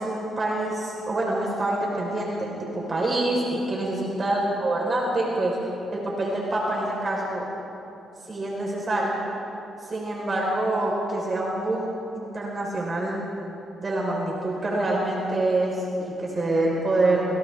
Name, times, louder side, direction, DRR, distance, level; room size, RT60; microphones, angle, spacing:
voice 1, 0.0-5.6 5.9-7.5 8.3-9.2 9.8-13.2 13.8-17.3, right 2 dB, 35° right, -3 dB, 4.8 m, -26 dB
28.5 x 26.5 x 3.7 m, 2.9 s
cardioid pair, 90°, 0 cm